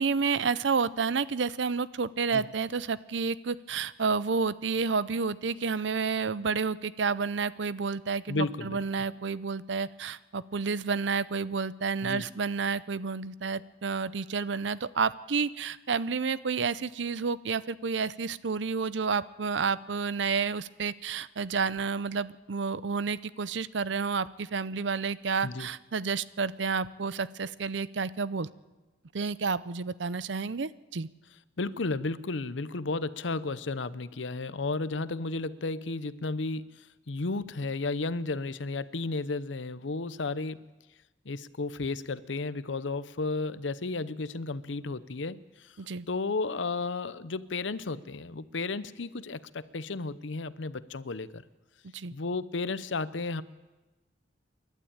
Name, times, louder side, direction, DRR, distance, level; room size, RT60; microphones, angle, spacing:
voice 1, 0.0-28.5 29.1-31.1 45.8-46.1 51.9-52.1, right 5 dB, 75° right, 18 dB, 0.6 m, -30 dB
voice 2, 8.3-8.8 12.0-12.3 25.4-25.7 31.6-36.6 37.1-40.6 41.2-45.7 46.1-51.4 52.1-53.4, left 3 dB, 85° left, 16 dB, 0.8 m, -33 dB
28.5 x 12.0 x 8.8 m, 1.2 s
head